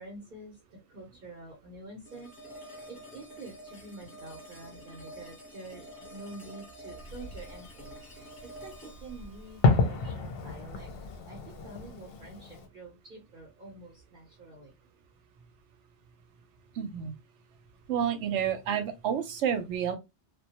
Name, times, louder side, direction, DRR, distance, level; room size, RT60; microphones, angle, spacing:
voice 1, 0.0-10.9 11.3-14.7, right 2 dB, 50° right, 0.7 m, -47 dB
sound 1, 2.1-11.1, equal, 20° left, 0.9 m, -49 dB
Fireworks, 7.0-12.7, left 3 dB, 65° left, 0.7 m, -31 dB
voice 2, 16.8-17.1 17.9-20.0, right 8 dB, 85° right, 0.9 m, -29 dB
2.2 x 2.1 x 2.8 m
omnidirectional pair, 1.2 m